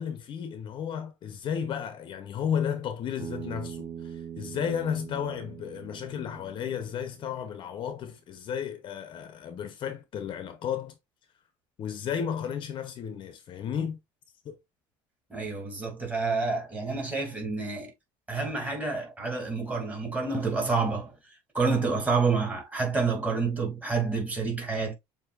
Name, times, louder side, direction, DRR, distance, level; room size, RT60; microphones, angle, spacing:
voice 1, 0.0-11.0 11.8-14.0 14.4-14.6, left 8 dB, 45° left, 0.8 m, -33 dB
Bass guitar, 3.2-7.5, right 8 dB, 30° right, 0.9 m, -42 dB
voice 2, 15.3-17.9 18.3-21.1 21.5-24.9, right 4 dB, 10° right, 2.4 m, -28 dB
7.0 x 2.8 x 2.5 m
cardioid pair, 135°, 12 cm